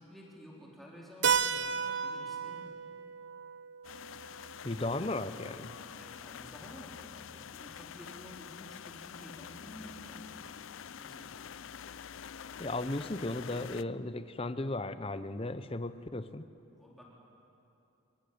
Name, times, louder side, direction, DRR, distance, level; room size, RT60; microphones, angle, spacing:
voice 1, 0.0-2.8 6.0-10.6 11.0-11.5 16.7-17.0, equal, ahead, -4 dB, 4.1 m, -52 dB
Keyboard (musical), 1.2-5.7, right 7 dB, 55° right, 0.7 m, -34 dB
sound 1, 3.8-13.8, left 8 dB, 65° left, 0.5 m, -47 dB
voice 2, 4.6-5.8 12.6-16.5, left 2 dB, 25° left, 12 dB, 0.8 m, -36 dB
25.0 x 22.0 x 8.6 m, 2.8 s
head